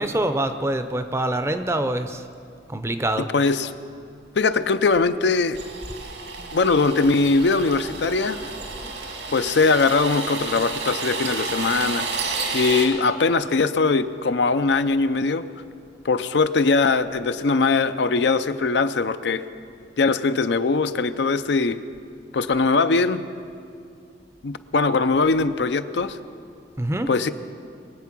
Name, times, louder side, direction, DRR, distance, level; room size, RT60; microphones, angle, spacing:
voice 1, 0.0-2.2 2.7-3.3 26.8-27.1, right 1 dB, 15° right, 9 dB, 0.5 m, -25 dB
voice 2, 3.2-3.7 4.4-5.6 6.5-8.5 9.3-12.1 12.5-15.5 16.0-19.4 20.0-21.8 22.3-23.2 24.4-26.2 27.1-27.3, left 4 dB, 75° left, 11 dB, 0.5 m, -21 dB
sound 1, 5.6-12.9, right 4 dB, 80° right, 2.1 m, -31 dB
22.0 x 8.3 x 6.1 m, 2.4 s
head